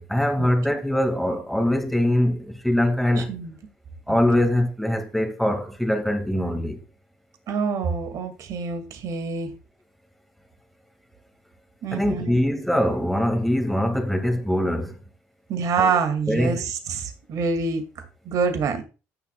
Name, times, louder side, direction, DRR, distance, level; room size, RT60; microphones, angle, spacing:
voice 1, 0.0-3.3 4.1-6.8 11.9-15.0 15.8-16.0 16.3-16.6, left 1 dB, ahead, 2.0 m, -23 dB
voice 2, 3.2-3.5 4.1-4.2 7.5-9.5 11.8-12.3 15.5-18.8, right 5 dB, 60° right, 2.3 m, -26 dB
16.0 x 6.9 x 2.3 m
supercardioid pair, 75°, 7 cm